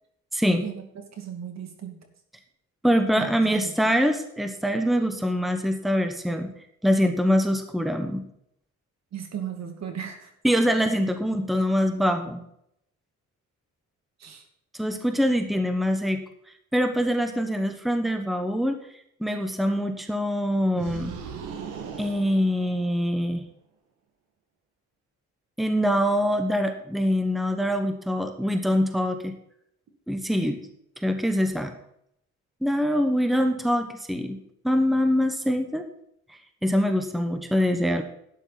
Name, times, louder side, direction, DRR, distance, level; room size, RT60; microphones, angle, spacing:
voice 1, 0.3-0.6 2.8-6.5 6.8-8.2 10.4-12.4 14.7-16.2 16.7-18.8 19.2-21.1 22.0-23.4 25.6-29.3 30.1-30.6 31.0-31.7 32.6-34.4 34.6-35.9 36.6-38.0, equal, ahead, 7 dB, 1.2 m, -24 dB
voice 2, 1.1-2.0 3.2-3.9 9.1-10.3 14.2-14.5, right 8 dB, 60° right, 5 dB, 2.3 m, -36 dB
sound 1, 20.7-23.2, right 6 dB, 90° right, 1.8 m, -38 dB
12.0 x 10.0 x 4.1 m, 0.73 s
cardioid pair, 90°, 30 cm